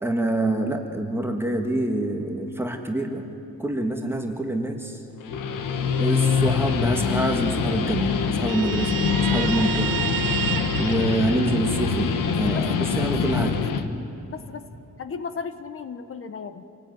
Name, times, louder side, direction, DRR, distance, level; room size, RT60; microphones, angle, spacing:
voice 1, 0.0-3.2 3.6-5.0 6.0-10.0 10.7-13.6, right 1 dB, 5° right, 3 dB, 1.7 m, -26 dB
Guitar, 5.1-13.9, left 6 dB, 80° left, 1.7 m, -24 dB
Guitar 2, 8.5-12.0, right 13 dB, 90° right, 0.8 m, -31 dB
voice 2, 12.5-13.1 14.3-14.6 15.0-16.6, left 6 dB, 40° left, 10 dB, 1.1 m, -35 dB
27.0 x 18.5 x 9.4 m, 2.9 s
wide cardioid pair, 175°, 32 cm